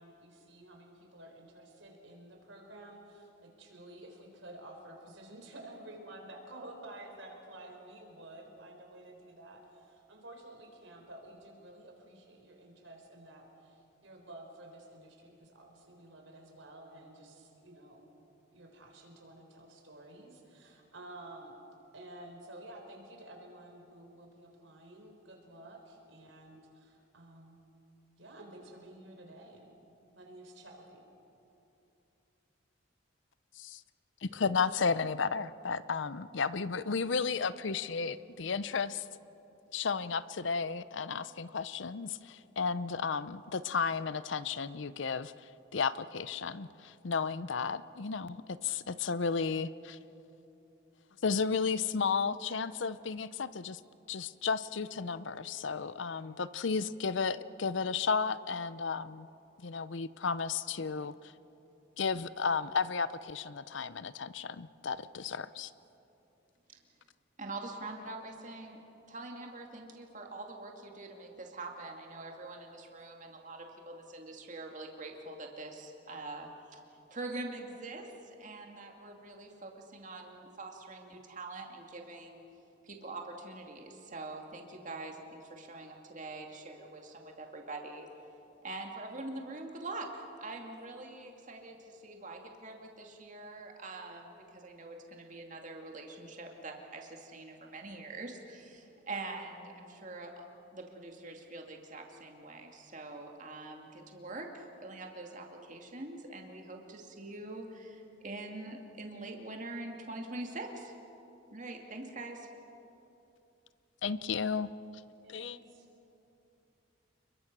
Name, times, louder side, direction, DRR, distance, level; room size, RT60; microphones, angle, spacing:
voice 1, 0.0-18.0 18.5-21.5 21.9-27.6 28.2-29.7 30.1-31.1 115.2-115.9, right 1 dB, 70° right, 2 dB, 4.2 m, -51 dB
voice 2, 34.2-39.0 39.7-45.3 45.7-50.0 51.2-53.8 54.1-59.3 59.6-61.3 62.0-65.7 114.0-114.7 115.3-115.6, left 5 dB, 65° left, 16 dB, 0.6 m, -33 dB
voice 3, 67.4-68.8 69.1-76.8 77.1-82.4 82.8-88.1 88.6-100.4 100.7-110.9 111.5-112.5, right 2 dB, 40° right, 2 dB, 2.4 m, -44 dB
29.5 x 22.0 x 6.1 m, 2.8 s
head